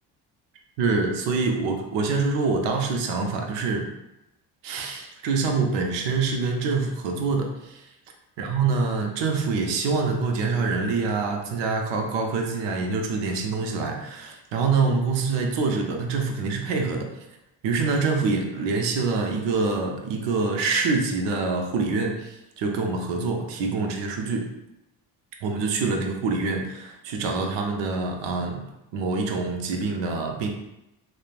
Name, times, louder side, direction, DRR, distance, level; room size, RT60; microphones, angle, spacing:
voice 1, 0.8-3.9 4.6-7.9 8.4-17.1 17.6-24.5 25.4-28.6 28.9-30.5, right 4 dB, 75° right, 2 dB, 0.6 m, -25 dB
3.0 x 2.1 x 2.4 m, 0.90 s
supercardioid pair, 75°, 44 cm